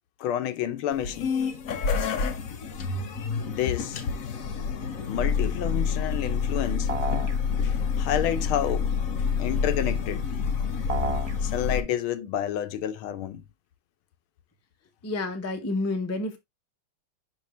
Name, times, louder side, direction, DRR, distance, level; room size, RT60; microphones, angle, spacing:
voice 1, 0.2-1.4 3.4-4.0 5.1-6.9 7.6-8.9 9.4-10.3 10.6-10.7 11.4-13.4, left 10 dB, 85° left, 1.6 m, -29 dB
sound 1, 0.9-11.8, left 6 dB, 55° left, 1.0 m, -28 dB
sound 2, 6.9-7.4 10.9-11.4, right 2 dB, 30° right, 0.6 m, -30 dB
voice 2, 15.0-16.4, left 2 dB, 15° left, 0.4 m, -29 dB
6.3 x 5.3 x 3.1 m
omnidirectional pair, 2.3 m